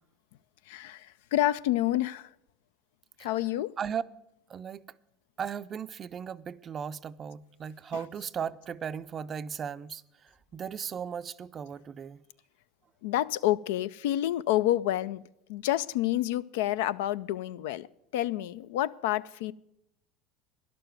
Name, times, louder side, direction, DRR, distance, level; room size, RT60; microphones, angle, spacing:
voice 1, 0.7-2.3 3.2-3.7 7.9-8.0 13.0-15.2 15.5-17.9 18.1-19.5, left 14 dB, 75° left, 0.3 m, -28 dB
voice 2, 4.5-4.8 5.4-12.2, right 7 dB, 35° right, 0.4 m, -37 dB
11.0 x 6.8 x 9.2 m
hypercardioid pair, 90°, 0 cm